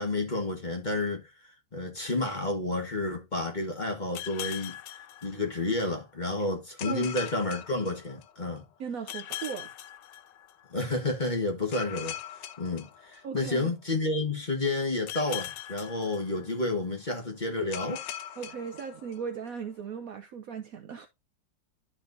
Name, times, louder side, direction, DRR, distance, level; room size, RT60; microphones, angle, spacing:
voice 1, 0.0-4.8 5.2-8.6 10.7-12.2 12.6-18.0, left 2 dB, 30° left, 1.4 m, -30 dB
sound 1, 4.1-5.9 6.8-8.5 9.1-10.8 11.7-13.7 15.1-16.9 17.7-19.5, left 11 dB, 85° left, 1.4 m, -41 dB
voice 2, 8.8-9.7 13.2-13.7 18.4-21.1, right 6 dB, 65° right, 0.9 m, -37 dB
11.5 x 4.4 x 2.6 m
omnidirectional pair, 1.9 m